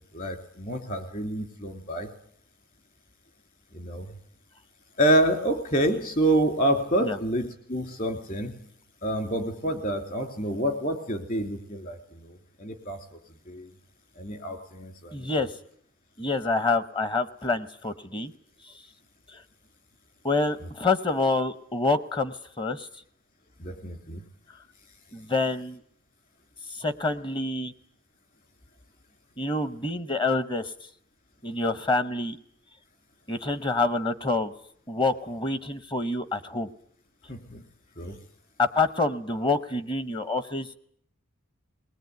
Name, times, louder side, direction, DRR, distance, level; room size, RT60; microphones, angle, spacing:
voice 1, 0.1-2.1 3.7-4.1 5.0-8.6 9.0-13.0 13.5-13.7 14.2-15.3 20.6-20.7 23.6-24.2 37.3-37.6 38.0-38.2, right 1 dB, 40° left, 7 dB, 2.9 m, -28 dB
voice 2, 15.1-15.5 16.2-18.3 19.3-19.4 20.2-22.9 25.1-25.8 26.8-27.7 29.4-30.6 31.4-32.4 33.3-34.5 34.9-36.7 38.6-40.7, left 3 dB, 25° left, 13 dB, 0.9 m, -27 dB
20.0 x 20.0 x 9.3 m, 0.66 s
head